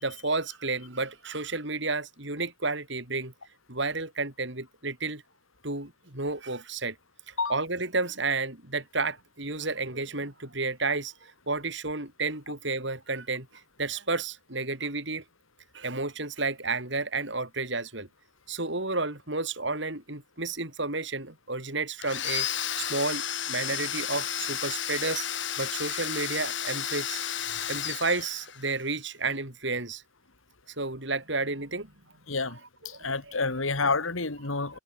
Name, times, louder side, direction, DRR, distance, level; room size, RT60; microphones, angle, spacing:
voice 1, 0.0-3.3 3.7-5.2 5.6-7.0 7.3-13.5 13.8-15.2 15.7-18.1 18.5-22.5 22.8-23.2 23.5-25.3 25.6-27.2 27.7-30.0 30.8-31.9 32.8-33.4 34.5-34.6, right 3 dB, 60° right, 4.5 m, -31 dB
Domestic sounds home sounds, 22.0-28.8, left 10 dB, 60° left, 6.9 m, -32 dB
voice 2, 32.3-32.6 32.9-34.8, left 4 dB, 75° left, 2.2 m, -29 dB
head